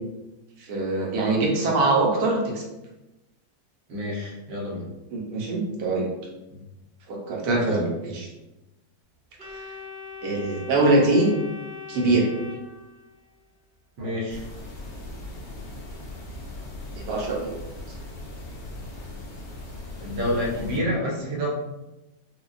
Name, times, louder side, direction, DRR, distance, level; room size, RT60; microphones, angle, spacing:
voice 1, 0.6-2.6 5.1-6.1 7.1-8.3 9.5-9.6 10.2-11.3 11.9-12.3 14.0-14.1 16.9-17.6, right 2 dB, 65° right, -2 dB, 1.2 m, -23 dB
voice 2, 3.9-4.9 6.5-6.6 14.0-14.4 20.0-21.5, equal, 85° right, -4 dB, 1.6 m, -28 dB
Organ, 9.4-13.3, left 5 dB, 50° right, 0.8 m, -40 dB
sound 1, 14.3-20.8, left 1 dB, 75° left, 1.4 m, -39 dB
4.7 x 2.3 x 2.5 m, 1.0 s
omnidirectional pair, 1.8 m